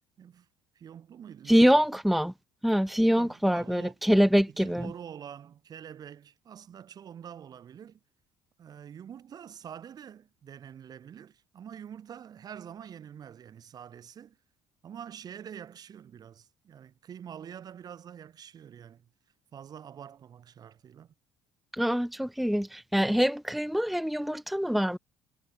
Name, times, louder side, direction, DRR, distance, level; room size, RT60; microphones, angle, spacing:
voice 1, 0.8-1.8 3.0-4.0 4.5-8.0 8.6-14.4 14.8-19.1 19.5-21.1, right 9 dB, 50° right, 5.8 m, -46 dB
voice 2, 1.5-2.3 2.6-4.9 21.7-25.0, equal, ahead, 0.9 m, -24 dB
supercardioid pair, 80°, 9 cm